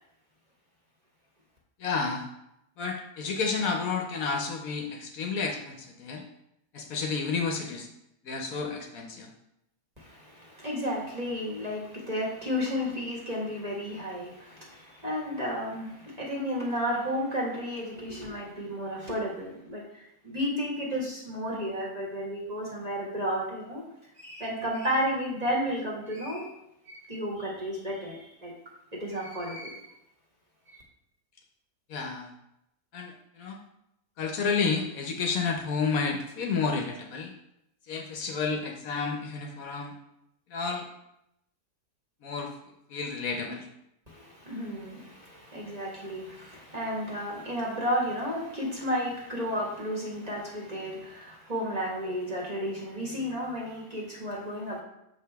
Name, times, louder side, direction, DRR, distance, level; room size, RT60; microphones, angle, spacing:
voice 1, 1.8-2.2 2.8-6.2 6.7-7.9 8.2-9.3 31.9-32.3 32.9-33.6 34.2-37.3 37.9-39.9 40.5-40.9 42.2-42.5 42.9-43.7, left 5 dB, 70° left, 2 dB, 1.1 m, -31 dB
voice 2, 10.0-23.9 24.2-26.5 26.8-28.5 28.9-29.9 30.7-30.8 44.1-54.8, equal, 25° right, -3 dB, 1.5 m, -32 dB
6.8 x 4.9 x 3.4 m, 0.82 s
omnidirectional pair, 1.7 m